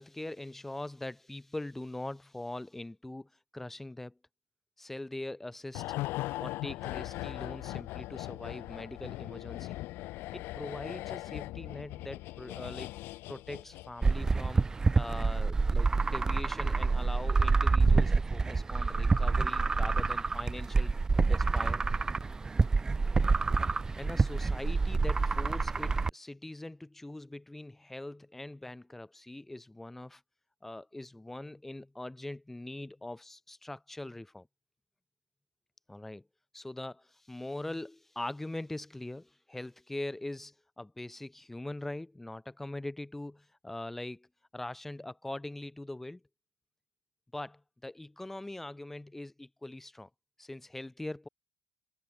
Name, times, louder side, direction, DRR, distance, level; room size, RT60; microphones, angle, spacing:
voice 1, 0.0-4.2 4.8-5.9 6.4-9.8 10.3-12.9 13.3-14.7 14.9-21.8 24.0-30.2 30.6-34.5 35.9-36.3 36.5-44.3 44.5-46.2 47.3-50.1 50.4-51.3, left 1 dB, 5° left, 1.5 m, -42 dB
sound 1, 5.7-14.3 14.6-14.7, left 18 dB, 75° left, 0.6 m, -39 dB
sound 2, 14.0-26.1, right 4 dB, 15° right, 1.0 m, -27 dB
cardioid pair, 145°, 4 cm